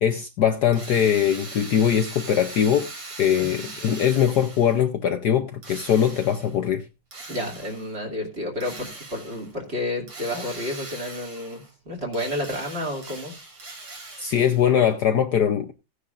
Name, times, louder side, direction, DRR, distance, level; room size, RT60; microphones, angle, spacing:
voice 1, 0.0-2.9 3.2-6.8 14.2-15.7, left 9 dB, 60° left, 1.2 m, -21 dB
Drill, 0.7-4.9 5.6-6.6 7.1-8.0 8.6-9.5 10.1-11.7 12.1-14.7, right 3 dB, 60° right, 3.7 m, -40 dB
voice 2, 3.4-3.7 7.3-13.3, left 1 dB, 30° right, 2.8 m, -31 dB
16.5 x 9.7 x 2.5 m
omnidirectional pair, 2.3 m